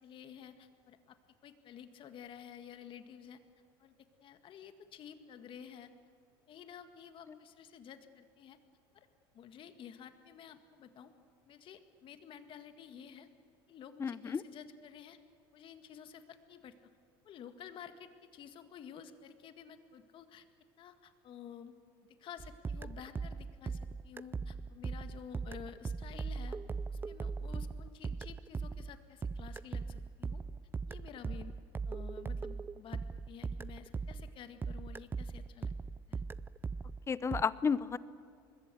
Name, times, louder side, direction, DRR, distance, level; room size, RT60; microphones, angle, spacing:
voice 1, 0.0-1.2 1.4-3.4 3.8-5.9 6.5-8.6 8.9-9.1 9.3-11.1 11.5-13.3 13.7-15.2 15.5-16.7 17.2-20.5 20.8-21.7 22.2-26.6 26.9-30.4 30.9-31.5 31.8-35.7 36.1-36.2, left 8 dB, 45° left, 9 dB, 1.8 m, -51 dB
voice 2, 14.0-14.4 37.1-38.0, left 6 dB, 25° left, 17 dB, 0.8 m, -32 dB
sound 1, 22.4-34.4 34.6-37.4, right 4 dB, 15° right, 0.5 m, -39 dB
25.0 x 21.0 x 7.7 m, 2.3 s
supercardioid pair, 105°, 12 cm